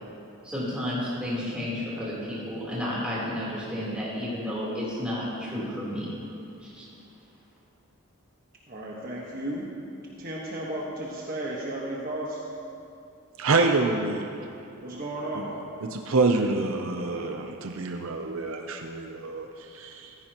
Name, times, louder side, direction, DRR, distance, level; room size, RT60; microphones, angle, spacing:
voice 1, 0.4-6.1 6.6-6.8, left 1 dB, 5° right, -8 dB, 3.6 m, -31 dB
voice 2, 8.7-9.7 10.2-12.4 14.8-15.5, right 1 dB, 40° right, -4 dB, 1.4 m, -34 dB
voice 3, 13.4-14.5 15.3-15.5 15.8-20.2, right 3 dB, 70° right, 4 dB, 0.7 m, -27 dB
15.0 x 15.0 x 3.0 m, 2.7 s
head